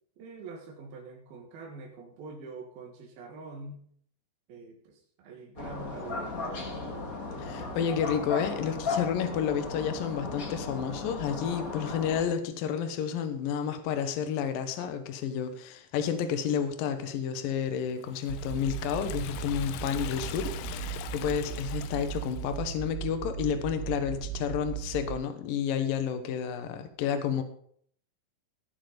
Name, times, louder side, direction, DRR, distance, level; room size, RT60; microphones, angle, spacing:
voice 1, 0.2-3.9 4.5-6.8, right 3 dB, 70° right, -2 dB, 3.5 m, -45 dB
sound 1, 5.6-12.2, left 3 dB, 40° left, 1.2 m, -36 dB
voice 2, 7.4-27.4, left 8 dB, 70° left, 8 dB, 2.7 m, -31 dB
Liquid, 18.0-22.6, left 12 dB, 85° left, 2.0 m, -42 dB
sound 2, 18.3-25.2, right 10 dB, 85° right, 3.0 m, -37 dB
17.5 x 6.8 x 5.2 m, 0.62 s
omnidirectional pair, 4.6 m